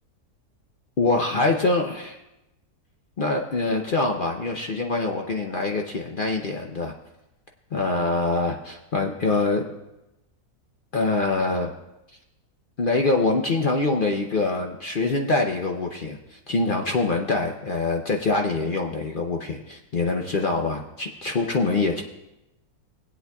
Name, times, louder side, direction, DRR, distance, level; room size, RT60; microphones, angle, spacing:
voice 1, 1.0-2.2 3.2-6.9 7.7-9.7 10.9-11.7 12.8-22.0, left 3 dB, 55° left, 2 dB, 0.6 m, -24 dB
20.0 x 8.3 x 2.3 m, 0.93 s
omnidirectional pair, 1.6 m